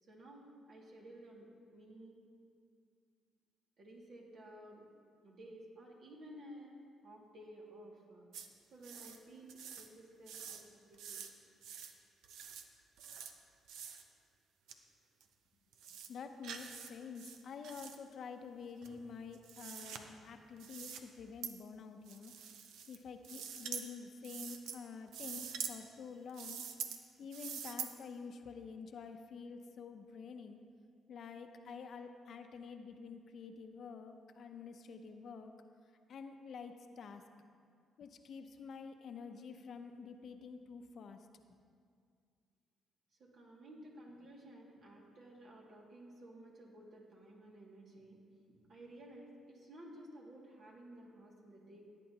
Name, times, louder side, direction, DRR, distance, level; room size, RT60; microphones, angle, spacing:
voice 1, 0.0-2.2 3.8-4.8 5.2-6.8 7.0-8.3 8.7-11.2 43.2-48.2 48.5-51.8, right 1 dB, 60° right, -2 dB, 2.2 m, -54 dB
sound 1, 8.3-8.5 8.8-9.2 9.5-9.9 10.3-10.6 10.9-11.3 11.6-11.9 12.2-12.6 13.0-13.3 13.7-14.0 14.7-14.8 15.2-15.3 15.7-16.1 16.4-16.9 17.2-18.0 18.8-20.0 20.6-21.0 21.4-21.5 22.1-23.0 23.2-23.9 24.2-24.8 25.1-25.7 26.3-27.0 27.3-27.9, right 7 dB, 90° right, 0.7 m, -45 dB
voice 2, 16.1-22.3 22.9-26.7 27.2-30.6 31.1-35.5 36.1-37.3 38.0-41.3, left 5 dB, 60° left, 6 dB, 0.7 m, -48 dB
16.5 x 9.0 x 2.9 m, 2.2 s
cardioid pair, 90°, 0 cm